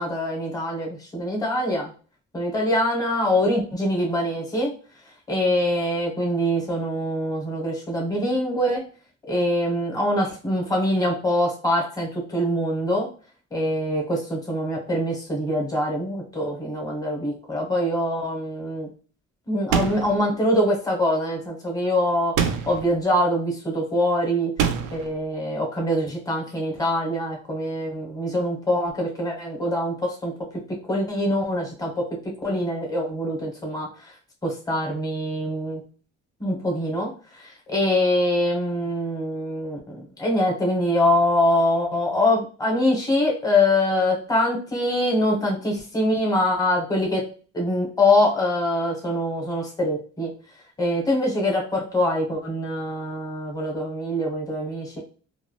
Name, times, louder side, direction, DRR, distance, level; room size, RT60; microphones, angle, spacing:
voice 1, 0.0-1.9 2.3-4.7 5.3-8.8 9.2-13.1 13.5-18.9 19.5-22.4 22.7-24.5 24.9-30.3 30.7-34.2 34.4-35.8 36.4-47.2 47.5-50.3 50.8-55.0, left 1 dB, 10° left, -1 dB, 0.9 m, -24 dB
sound 1, 19.7-20.2 22.4-22.9 24.6-25.1, right 7 dB, 85° right, 0.5 m, -24 dB
3.2 x 2.3 x 2.2 m, 0.38 s
cardioid pair, 90°, 30 cm